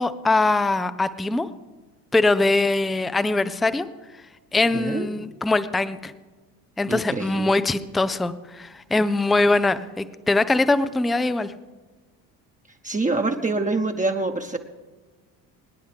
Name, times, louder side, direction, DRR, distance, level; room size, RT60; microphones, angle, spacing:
voice 1, 0.0-1.5 2.1-3.9 4.5-6.1 6.8-11.5, left 2 dB, ahead, 13 dB, 0.3 m, -22 dB
voice 2, 4.7-5.1 6.9-7.5 12.8-14.6, right 3 dB, 15° right, 4 dB, 1.0 m, -25 dB
23.0 x 10.0 x 3.4 m, 1.3 s
figure-of-eight pair, 55°, 49 cm